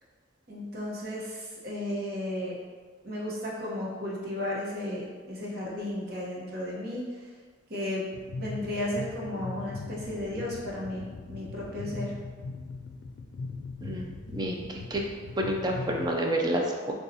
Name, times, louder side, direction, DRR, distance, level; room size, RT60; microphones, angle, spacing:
voice 1, 0.5-2.6 3.0-7.3 7.7-8.1 8.3-11.0 11.3-12.2, left 1 dB, 50° right, -4 dB, 0.9 m, -34 dB
sound 1, 8.1-16.1, left 3 dB, 60° left, 0.3 m, -40 dB
voice 2, 13.8-15.0 15.4-16.9, right 1 dB, 20° right, 1 dB, 0.4 m, -29 dB
6.6 x 2.3 x 2.7 m, 1.5 s
head